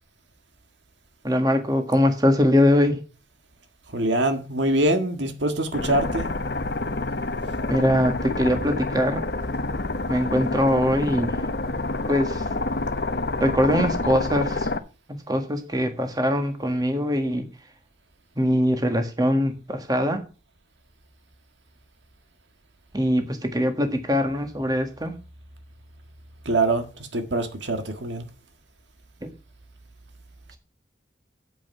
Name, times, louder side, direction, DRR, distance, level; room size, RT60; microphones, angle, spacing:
voice 1, 1.2-3.0 7.7-9.3 10.1-11.4 12.1-12.4 13.4-14.7 15.1-17.5 18.4-20.2 22.9-25.1 29.2-29.3, equal, 20° right, 1.5 m, -22 dB
voice 2, 3.9-6.3 26.4-26.9 27.1-28.2, right 1 dB, 75° right, 1.7 m, -24 dB
sound 1, 5.7-14.8, left 2 dB, 60° left, 1.0 m, -28 dB
8.9 x 8.0 x 5.8 m
head